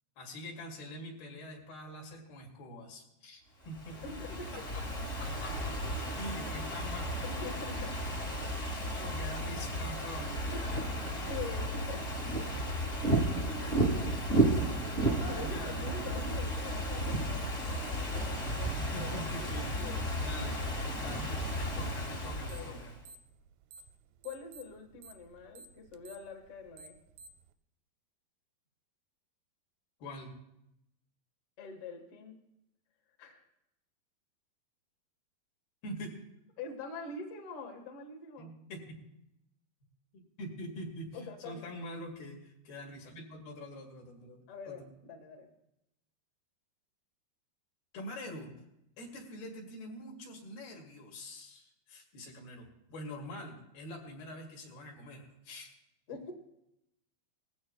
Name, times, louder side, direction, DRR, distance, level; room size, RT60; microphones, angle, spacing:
voice 1, 0.2-4.4 5.2-5.7 6.2-7.1 8.9-11.3 12.3-14.2 14.5-14.7 15.2-16.4 18.8-20.6 21.0-23.0 30.0-30.3 35.8-36.2 38.4-39.0 40.1-44.9 47.9-48.5 49.0-55.7, left 1 dB, 75° left, -1 dB, 4.2 m, -45 dB
Ocean / Fireworks, 3.7-23.0, right 1 dB, 35° left, 1.0 m, -33 dB
voice 2, 4.0-4.5 7.2-7.9 10.3-10.6 11.3-12.0 15.3-20.0 22.4-22.8 24.2-26.9 31.6-32.4 33.2-33.4 36.6-38.5 41.1-41.6 44.5-45.5 56.1-56.3, left 4 dB, 55° left, 3 dB, 1.7 m, -44 dB
sound 1, 22.5-22.8 23.0-24.0 24.2-27.5, right 4 dB, 90° right, 2.7 m, -52 dB
20.0 x 15.0 x 2.3 m, 0.83 s
omnidirectional pair, 4.5 m